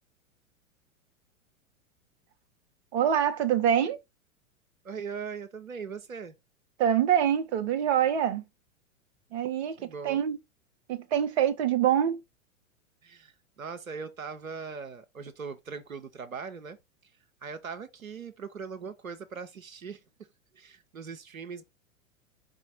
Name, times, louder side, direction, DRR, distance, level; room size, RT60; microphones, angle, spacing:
voice 1, 2.9-4.0 6.8-8.4 9.3-10.4 10.9-12.2, right 9 dB, 55° right, 0.8 m, -25 dB
voice 2, 4.8-6.3 9.8-10.2 13.0-16.8 17.0-17.1 17.4-20.0 20.5-21.6, right 5 dB, 90° right, 0.7 m, -40 dB
4.7 x 2.4 x 4.5 m
figure-of-eight pair, 100°, 40 cm